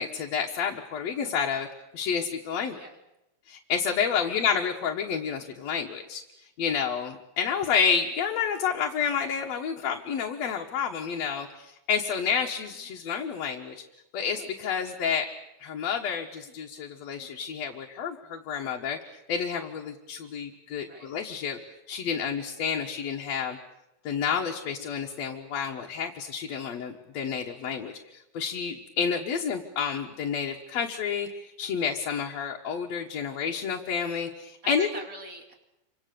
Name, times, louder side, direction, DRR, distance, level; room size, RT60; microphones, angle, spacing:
voice 1, 0.0-1.7 1.9-2.8 3.5-6.2 6.6-13.8 14.1-15.3 15.6-19.0 19.3-21.6 21.9-23.6 24.0-34.9, left 6 dB, 65° left, 1 dB, 2.5 m, -29 dB
voice 2, 20.8-21.1 34.6-35.5, right 2 dB, 30° right, 3 dB, 3.3 m, -43 dB
28.5 x 25.0 x 6.9 m, 0.89 s
omnidirectional pair, 3.3 m